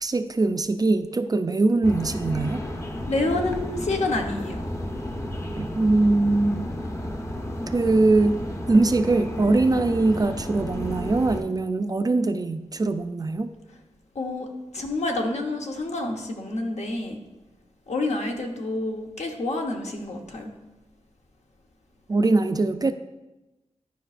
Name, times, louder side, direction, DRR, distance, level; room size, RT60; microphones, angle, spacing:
voice 1, 0.0-2.6 5.6-6.7 7.7-8.4 8.7-13.5 22.1-22.9, right 2 dB, 30° right, 10 dB, 0.3 m, -22 dB
sound 1, 1.8-11.4, left 1 dB, 25° left, 0.7 m, -32 dB
voice 2, 3.1-4.6 14.1-14.5 14.7-17.2 17.9-20.5, left 2 dB, 70° left, 2 dB, 0.9 m, -28 dB
11.0 x 5.0 x 2.5 m, 1.0 s
wide cardioid pair, 95°, 12 cm